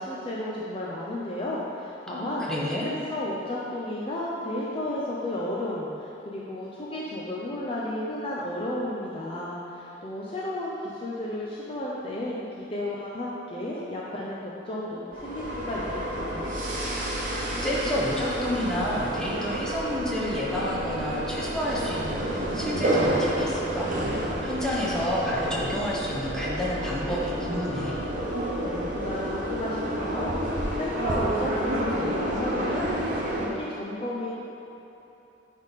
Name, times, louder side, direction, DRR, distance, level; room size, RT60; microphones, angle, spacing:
voice 1, 0.0-2.5 2.8-16.5 28.6-34.4, left 1 dB, 30° left, -5 dB, 0.6 m, -33 dB
voice 2, 2.1-2.9 17.6-23.9 24.1-28.0, left 1 dB, 5° left, -6 dB, 1.0 m, -30 dB
sound 1, 15.1-33.5, right 1 dB, 45° right, 1.0 m, -29 dB
10.0 x 3.6 x 4.1 m, 2.9 s
head